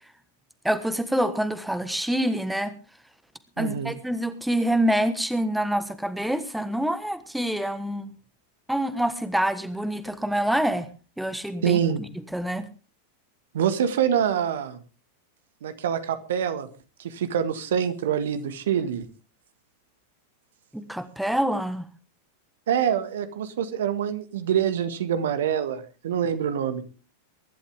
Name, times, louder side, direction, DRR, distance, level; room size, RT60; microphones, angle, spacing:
voice 1, 0.6-2.7 3.6-8.1 8.7-10.9 11.2-11.8 12.3-12.7 20.7-21.9, right 1 dB, ahead, 12 dB, 1.3 m, -26 dB
voice 2, 3.6-4.0 11.6-12.0 13.5-14.8 15.6-16.7 17.0-19.0 22.7-26.8, right 8 dB, 60° right, 11 dB, 1.7 m, -25 dB
23.0 x 11.5 x 3.6 m, 0.33 s
figure-of-eight pair, 90°, 0 cm